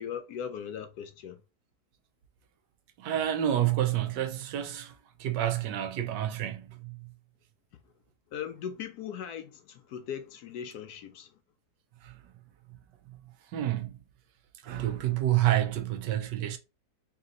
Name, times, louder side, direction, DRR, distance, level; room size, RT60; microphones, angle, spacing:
voice 1, 0.0-1.4 8.3-11.4, left 8 dB, 70° left, 1.0 m, -39 dB
voice 2, 3.0-4.9 5.2-7.0 12.0-12.1 13.5-13.9 14.6-16.6, right 12 dB, 80° right, 1.3 m, -28 dB
3.4 x 2.8 x 3.8 m
omnidirectional pair, 1.9 m